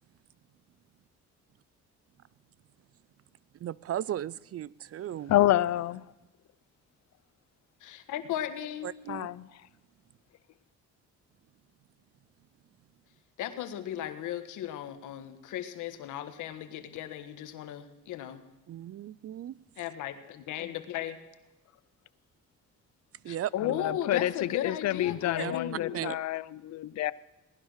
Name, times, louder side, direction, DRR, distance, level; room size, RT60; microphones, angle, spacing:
voice 1, 3.6-5.4 8.8-9.3 18.7-19.6 23.2-23.5 25.4-25.6 25.9-26.2, right 11 dB, 50° right, 0.5 m, -36 dB
voice 2, 5.3-6.0 9.1-9.5 23.6-27.1, left 14 dB, 60° left, 0.6 m, -28 dB
voice 3, 7.8-8.9 13.4-18.4 19.8-21.2 23.3-26.1, left 11 dB, 90° left, 1.5 m, -36 dB
18.5 x 12.0 x 6.4 m
cardioid pair, 90°, 30 cm